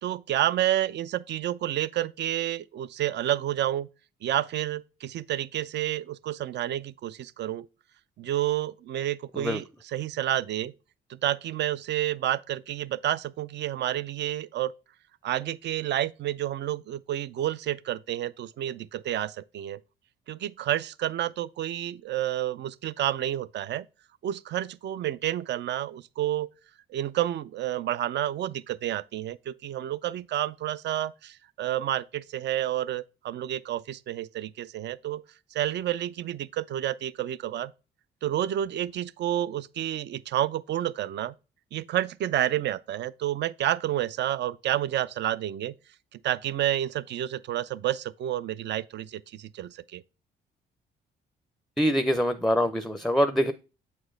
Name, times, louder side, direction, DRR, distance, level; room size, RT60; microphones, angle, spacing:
voice 1, 0.0-3.9 4.2-7.7 8.2-9.6 9.9-10.7 11.1-14.7 15.2-19.8 20.3-23.9 24.2-26.5 26.9-35.2 35.5-37.7 38.2-41.3 41.7-45.8 46.2-50.0, right 12 dB, 60° right, 0.5 m, -30 dB
voice 2, 51.8-53.5, equal, ahead, 0.5 m, -24 dB
7.1 x 4.4 x 3.2 m
cardioid pair, 90°, 20 cm